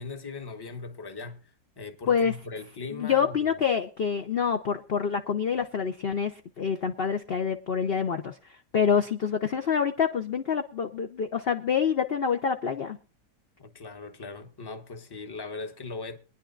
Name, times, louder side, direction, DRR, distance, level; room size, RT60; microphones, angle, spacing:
voice 1, 0.0-1.5 1.8-3.6 8.7-8.9 13.6-16.2, left 4 dB, 15° left, 0.9 m, -39 dB
voice 2, 2.9-8.4 8.7-13.0, left 6 dB, 50° left, 0.8 m, -26 dB
22.5 x 10.5 x 2.5 m
omnidirectional pair, 1.8 m